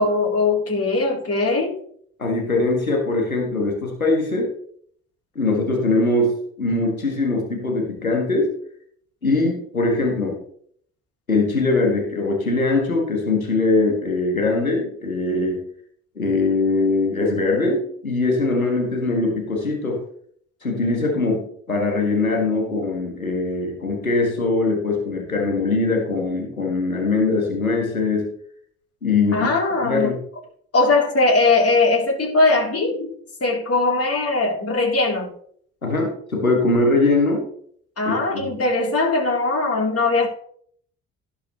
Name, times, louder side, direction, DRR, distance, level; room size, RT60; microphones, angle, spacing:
voice 1, 0.0-1.8 29.3-30.1 30.7-33.1 33.4-35.3 38.0-40.3, left 3 dB, 35° left, 3.9 m, -20 dB
voice 2, 2.2-4.5 5.4-8.5 9.2-10.4 11.3-15.6 16.2-20.0 20.6-28.3 29.0-29.5 29.8-30.2 35.8-37.4 38.3-38.6, left 3 dB, 90° left, 1.8 m, -21 dB
17.0 x 5.9 x 3.3 m
figure-of-eight pair, 45°, 41 cm